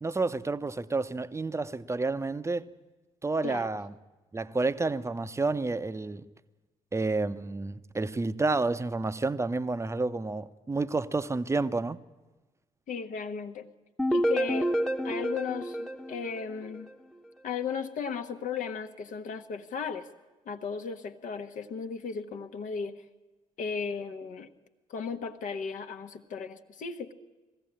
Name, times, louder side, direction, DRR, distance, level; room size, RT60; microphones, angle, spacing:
voice 1, 0.0-2.7 3.2-3.9 4.3-6.2 6.9-12.0, right 3 dB, 15° right, 0.9 m, -30 dB
voice 2, 12.9-13.7 14.1-14.7 15.0-16.9 17.4-20.1 20.4-23.0 23.6-24.5 24.9-27.1, left 6 dB, 50° left, 1.3 m, -36 dB
sound 1, 14.0-16.9, equal, 5° left, 1.2 m, -29 dB
21.0 x 15.5 x 8.8 m
figure-of-eight pair, 40°, 16 cm